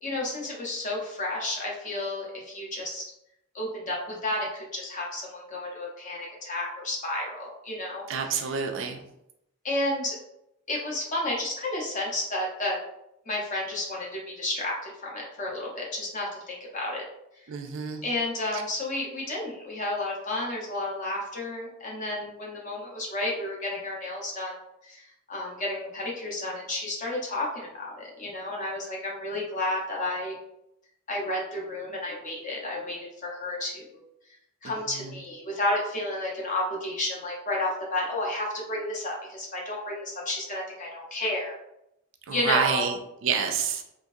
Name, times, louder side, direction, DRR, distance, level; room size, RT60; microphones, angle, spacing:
voice 1, 0.0-3.0 3.5-8.1 8.4-8.5 9.6-10.2 10.7-12.8 13.3-17.1 18.0-24.6 24.8-30.4 31.1-34.0 34.6-41.6 42.3-42.9, left 1 dB, 35° left, -3 dB, 0.9 m, -31 dB
voice 2, 8.1-9.0 17.5-18.0 18.5-18.6 34.9-35.1 42.3-43.8, right 6 dB, 65° right, 4 dB, 0.4 m, -28 dB
3.6 x 2.6 x 2.7 m, 0.81 s
head